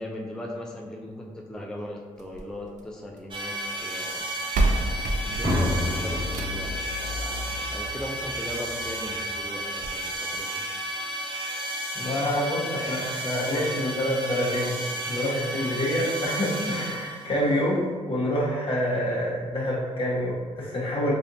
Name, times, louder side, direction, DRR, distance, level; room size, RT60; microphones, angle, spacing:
voice 1, 0.0-4.3 5.2-6.7 7.0-10.6 15.5-15.6, left 1 dB, 5° left, -1 dB, 0.4 m, -38 dB
sound 1, 2.2-3.4 4.2-4.3 4.5-6.8 8.2-8.3 8.8-8.9 9.1-9.2 9.8-9.9, right 2 dB, 65° right, 0.4 m, -28 dB
magic bell teleport synth, 3.3-17.4, right 1 dB, 40° right, 0.8 m, -33 dB
sound 2, 5.4-9.4, left 1 dB, 85° right, 1.3 m, -31 dB
voice 2, 11.9-14.7 15.1-21.1, equal, 45° left, -6 dB, 1.2 m, -27 dB
3.3 x 2.7 x 2.6 m, 1.5 s
cardioid pair, 70°, 13 cm